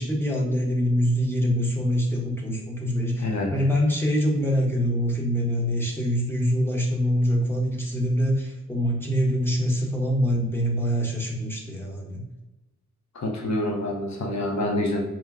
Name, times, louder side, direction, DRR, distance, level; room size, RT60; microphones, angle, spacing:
voice 1, 0.0-12.2, equal, 10° left, -2 dB, 0.9 m, -24 dB
voice 2, 3.2-3.5 13.1-15.0, left 1 dB, 65° left, 1 dB, 0.7 m, -27 dB
4.3 x 2.2 x 3.6 m, 1.0 s
wide cardioid pair, 100°, 29 cm